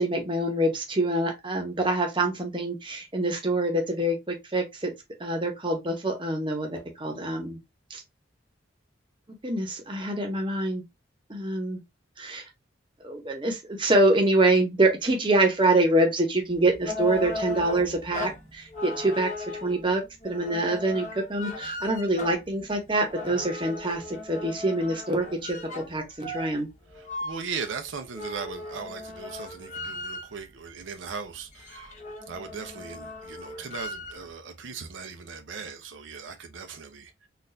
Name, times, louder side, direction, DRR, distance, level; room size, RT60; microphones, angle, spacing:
voice 1, 0.0-4.9 5.2-7.6 7.9-8.0 9.4-10.8 11.3-11.8 12.2-12.4 13.0-19.3 19.6-26.7, right 2 dB, 25° right, 0.9 m, -25 dB
sound 1, 16.5-30.6 31.0-31.1 31.4-34.3, left 2 dB, 40° left, 0.9 m, -37 dB
voice 2, 26.9-31.9 32.3-37.3, right 5 dB, 80° right, 0.6 m, -38 dB
3.9 x 2.5 x 2.6 m
head